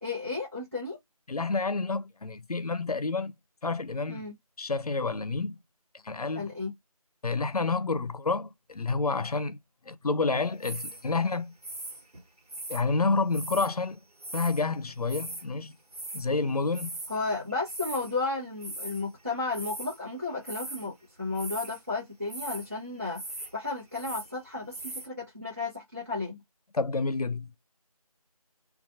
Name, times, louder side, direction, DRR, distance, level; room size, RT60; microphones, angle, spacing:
voice 1, 0.0-1.0 4.1-4.3 6.3-6.7 17.1-20.9 21.2-23.2 23.5-26.4, left 3 dB, 25° right, 1.1 m, -33 dB
voice 2, 1.3-3.3 3.6-4.2 4.6-5.6 6.0-6.5 7.2-9.6 9.8-11.5 12.7-14.0 14.3-15.7 16.1-16.9 26.7-27.5, left 3 dB, 75° left, 0.5 m, -29 dB
sound 1, 10.6-11.1 11.6-12.8 13.3-13.7 14.2-14.6 14.9-15.5 15.9-16.3 16.7-17.2 17.5-18.1 18.6-19.0 19.5-20.0 20.4-20.9 21.3-21.8 22.3-22.7 23.1-23.5 23.8-24.3 24.7-25.1, right 2 dB, 80° right, 1.2 m, -39 dB
2.4 x 2.3 x 2.7 m
figure-of-eight pair, 180°, 19 cm